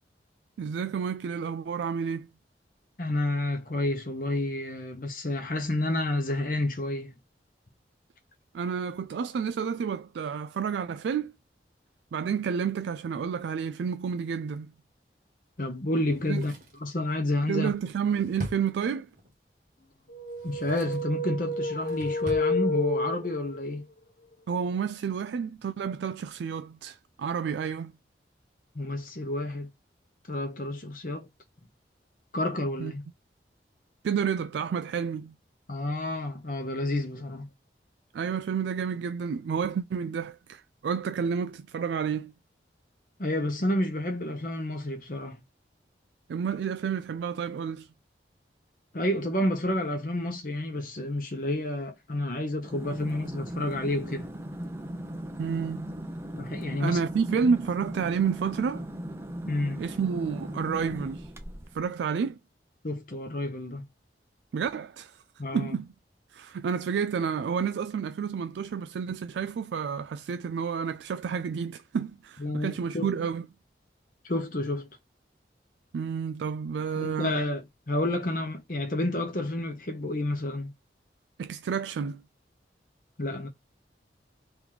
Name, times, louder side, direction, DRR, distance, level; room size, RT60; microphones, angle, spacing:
voice 1, 0.6-2.3 8.5-11.3 12.1-14.7 16.3-16.4 17.5-19.1 24.5-27.9 32.8-32.9 34.0-35.3 38.1-42.3 46.3-47.9 55.4-55.9 56.8-58.8 59.8-61.3 61.7-62.4 64.5-65.2 65.5-65.9 66.3-73.4 75.9-77.4 81.4-82.2, right 6 dB, 80° right, 0.3 m, -30 dB
voice 2, 3.0-7.2 15.6-16.5 16.8-17.7 20.4-23.9 28.7-29.7 30.3-31.3 32.3-33.0 35.7-37.5 43.2-45.4 48.9-54.3 56.3-57.0 59.5-59.8 62.8-63.8 65.4-65.8 72.4-73.2 74.2-74.9 76.9-80.7 83.2-83.5, left 1 dB, 50° left, 0.9 m, -30 dB
Drawer open or close, 16.0-19.3 20.2-21.1 21.5-22.5 22.8-22.9, equal, 50° right, 1.2 m, -42 dB
sound 1, 20.1-23.7, left 1 dB, 70° left, 1.0 m, -30 dB
sound 2, 52.6-61.8, equal, 15° right, 0.5 m, -38 dB
3.5 x 3.0 x 3.8 m
head